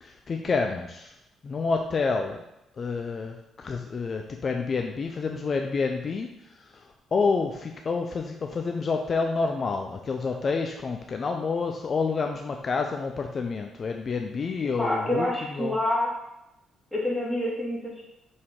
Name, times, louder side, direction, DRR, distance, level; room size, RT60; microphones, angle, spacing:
voice 1, 0.0-1.1 1.4-2.4 2.8-15.7, left 4 dB, 45° left, 3 dB, 0.5 m, -29 dB
voice 2, 14.8-16.1 16.9-18.0, left 1 dB, ahead, -5 dB, 2.4 m, -27 dB
6.7 x 4.2 x 3.7 m, 0.86 s
cardioid pair, 90°, 0 cm